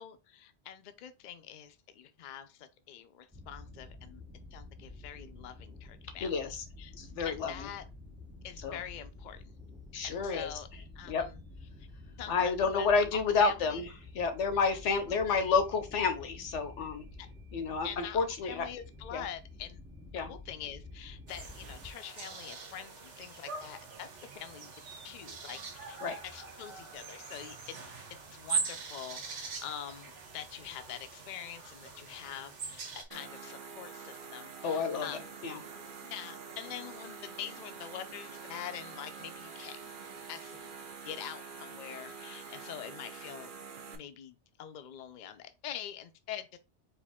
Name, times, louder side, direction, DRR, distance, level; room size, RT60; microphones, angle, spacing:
voice 1, 0.0-4.2 4.5-6.3 6.8-6.9 7.2-7.8 8.4-9.5 10.0-10.7 10.9-11.4 12.2-13.8 14.6-14.8 15.0-15.5 17.8-19.8 20.2-24.1 24.3-24.7 25.0-27.8 28.1-35.3 36.0-39.9 40.3-40.8 41.0-43.5 43.9-46.6, left 10 dB, 55° left, 0.6 m, -45 dB
sound 1, 3.3-21.9, left 2 dB, 5° right, 0.6 m, -50 dB
voice 2, 6.2-6.6 6.9-7.7 8.6-8.8 9.9-10.5 11.1-11.2 12.3-13.9 14.1-17.0 17.5-18.7 19.1-19.2 20.1-20.3 26.0-26.2 34.6-35.6, left 5 dB, 85° left, 1.2 m, -30 dB
sound 2, 21.3-33.0, right 5 dB, 85° right, 1.2 m, -42 dB
sound 3, 33.1-44.0, right 5 dB, 50° right, 0.8 m, -46 dB
4.6 x 2.7 x 3.5 m
omnidirectional pair, 1.2 m